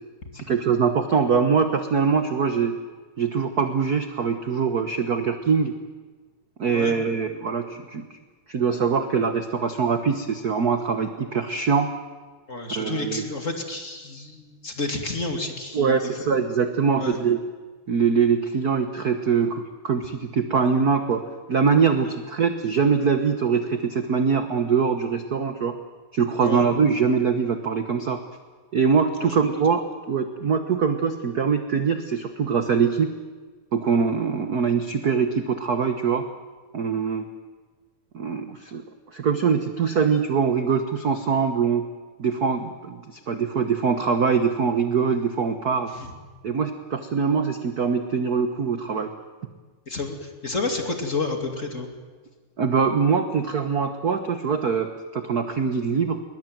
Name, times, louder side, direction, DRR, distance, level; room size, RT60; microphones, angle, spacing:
voice 1, 0.3-2.8 3.2-5.7 6.6-8.0 8.5-11.9 12.7-13.3 15.7-17.4 17.9-21.2 21.5-25.7 26.1-28.2 28.7-33.1 33.7-36.2 36.7-37.3 38.1-38.8 39.1-41.9 42.2-45.9 46.4-49.1 52.6-56.2, right 6 dB, 55° right, 8 dB, 1.0 m, -23 dB
voice 2, 12.5-16.0 17.0-17.2 26.4-26.6 29.2-29.4 46.0-46.1 49.9-51.9, left 3 dB, 25° left, 4 dB, 2.4 m, -30 dB
21.5 x 21.0 x 9.2 m, 1.4 s
omnidirectional pair, 3.4 m